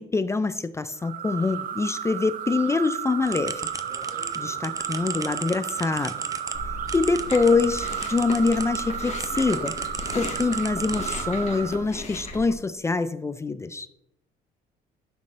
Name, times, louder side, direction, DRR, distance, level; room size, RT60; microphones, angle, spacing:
voice 1, 0.0-3.7 4.4-6.2 6.9-13.9, left 4 dB, 15° left, 13 dB, 0.4 m, -25 dB
sound 1, 1.0-11.9, right 9 dB, 55° right, 0.7 m, -33 dB
sound 2, 3.2-8.8 9.2-11.5, right 4 dB, 20° right, 0.6 m, -37 dB
Chewing mastication, 6.5-12.5, left 2 dB, 40° left, 2.1 m, -36 dB
11.5 x 6.2 x 3.3 m, 0.80 s
cardioid pair, 110°, 17 cm